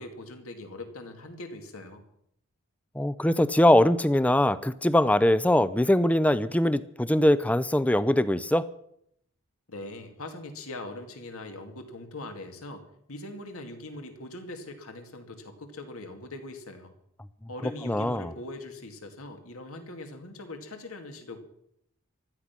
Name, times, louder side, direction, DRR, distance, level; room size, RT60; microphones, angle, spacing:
voice 1, 0.0-2.0 9.7-16.9 17.5-21.4, left 2 dB, 80° left, 6 dB, 2.4 m, -41 dB
voice 2, 3.0-8.6 17.9-18.3, left 1 dB, 5° left, 16 dB, 0.5 m, -22 dB
16.5 x 12.5 x 6.0 m, 0.74 s
head